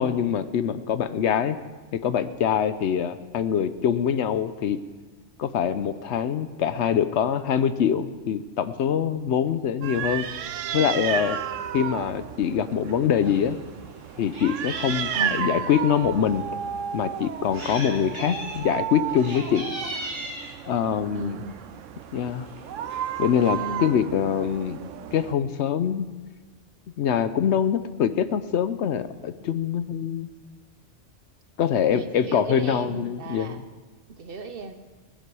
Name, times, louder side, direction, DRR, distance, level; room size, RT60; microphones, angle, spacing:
voice 1, 0.0-1.6 1.9-4.8 5.4-10.3 10.7-11.4 11.7-13.6 14.2-16.4 16.9-19.6 20.6-21.4 22.1-22.5 23.2-24.8 25.1-26.1 27.0-30.3 31.6-33.6, left 8 dB, 70° left, 13 dB, 0.9 m, -24 dB
sound 1, 9.8-25.3, right 9 dB, 85° right, 1.0 m, -33 dB
Meow, 13.2-13.4 13.8-15.5 16.3-16.4 17.2-17.9 18.1-18.6 19.1-20.5 21.5-21.8 22.2-22.3 22.5-22.6 22.9-23.5, equal, 20° right, 3.3 m, -37 dB
voice 2, 15.1-15.5 21.1-21.6 23.6-24.0 31.9-33.6 34.1-34.7, right 2 dB, 55° right, 9 dB, 1.0 m, -35 dB
19.0 x 10.0 x 4.8 m, 1.3 s
omnidirectional pair, 1.2 m